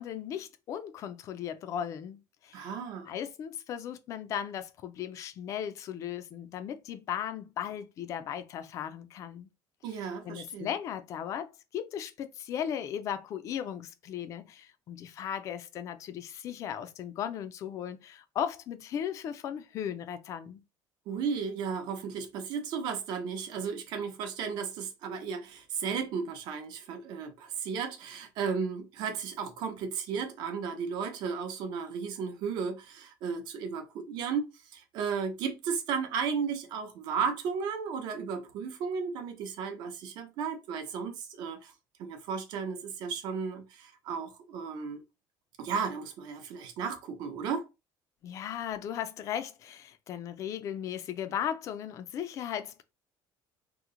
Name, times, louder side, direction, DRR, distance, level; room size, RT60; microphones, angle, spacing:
voice 1, 0.0-2.7 3.1-9.5 9.9-10.0 10.2-20.6 48.2-52.8, left 9 dB, 40° left, 0.4 m, -37 dB
voice 2, 2.5-3.1 9.8-10.7 21.1-41.7 42.0-45.0 45.6-47.6, right 6 dB, 60° right, 0.7 m, -34 dB
2.9 x 2.0 x 3.6 m
cardioid pair, 175°, 8 cm